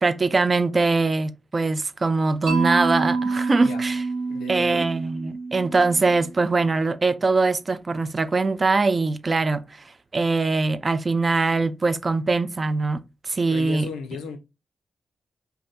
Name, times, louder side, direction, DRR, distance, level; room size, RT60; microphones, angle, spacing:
voice 1, 0.0-4.0 4.5-9.8 10.1-13.9, right 3 dB, 45° right, 0.4 m, -22 dB
Mallet percussion, 2.5-6.5, right 4 dB, 90° right, 0.9 m, -27 dB
voice 2, 4.3-4.8 13.5-14.4, left 6 dB, 90° left, 0.5 m, -36 dB
2.6 x 2.3 x 3.3 m
supercardioid pair, 40°, 0 cm